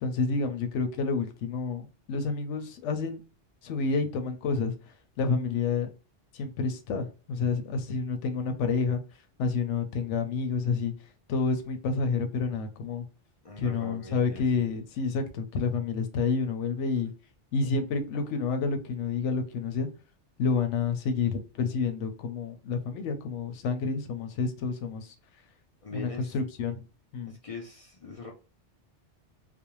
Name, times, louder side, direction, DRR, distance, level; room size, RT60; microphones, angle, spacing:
voice 1, 0.0-3.2 3.6-4.7 5.2-5.9 6.3-9.0 9.4-10.9 11.3-13.1 13.6-17.1 17.5-19.9 20.4-25.1 25.9-26.8 27.1-27.3, left 4 dB, 85° left, 7 dB, 0.9 m, -29 dB
voice 2, 13.4-14.7 25.8-26.3 27.3-28.3, left 3 dB, 50° left, -1 dB, 0.4 m, -42 dB
2.5 x 2.1 x 2.9 m, 0.34 s
omnidirectional pair, 1.2 m